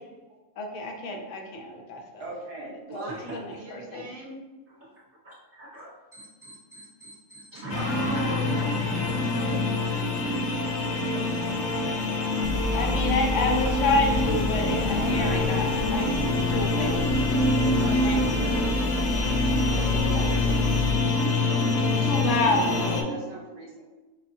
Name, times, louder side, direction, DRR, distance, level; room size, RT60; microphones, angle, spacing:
voice 1, 0.6-2.3 2.9-4.1 12.7-16.9 18.0-18.5 22.0-22.7, left 2 dB, 65° left, 2 dB, 0.7 m, -29 dB
voice 2, 2.2-4.4 7.7-10.0 11.1-11.5 15.0-15.6 16.7-18.9 19.7-20.7 21.2-21.6 22.7-23.8, right 1 dB, 45° right, -3 dB, 0.9 m, -39 dB
voice 3, 5.2-9.4, right 1 dB, 10° right, -10 dB, 0.7 m, -37 dB
sound 1, 7.7-23.0, left 2 dB, 80° left, 1.2 m, -26 dB
sound 2, 12.4-20.9, left 1 dB, 30° left, 0.3 m, -30 dB
5.3 x 2.3 x 2.6 m, 1.2 s
omnidirectional pair, 1.8 m